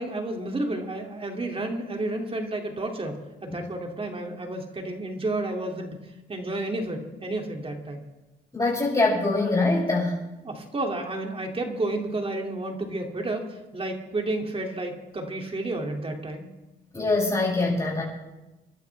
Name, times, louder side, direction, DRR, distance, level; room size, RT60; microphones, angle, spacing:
voice 1, 0.0-6.0 6.3-8.1 10.4-16.5, right 2 dB, 30° right, 3 dB, 2.8 m, -31 dB
voice 2, 8.5-10.2 16.9-18.0, left 2 dB, 20° left, -9 dB, 7.0 m, -23 dB
26.5 x 11.5 x 3.5 m, 1.0 s
cardioid pair, 90°, 20 cm